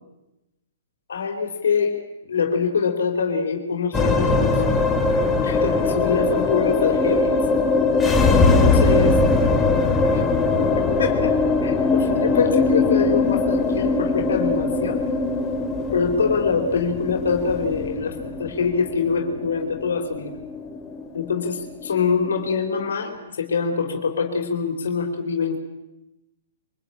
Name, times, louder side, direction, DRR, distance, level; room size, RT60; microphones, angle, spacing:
voice 1, 1.1-1.9 2.3-4.6 5.4-7.3 8.2-9.2 10.1-10.2 10.6-11.3 11.6-15.0 15.9-20.4 21.1-25.6, left 5 dB, 80° left, 4 dB, 3.8 m, -24 dB
sound 1, 3.9-22.4, left 3 dB, 10° left, 2.9 m, -21 dB
24.0 x 19.0 x 8.9 m, 0.95 s
hypercardioid pair, 135°, 0 cm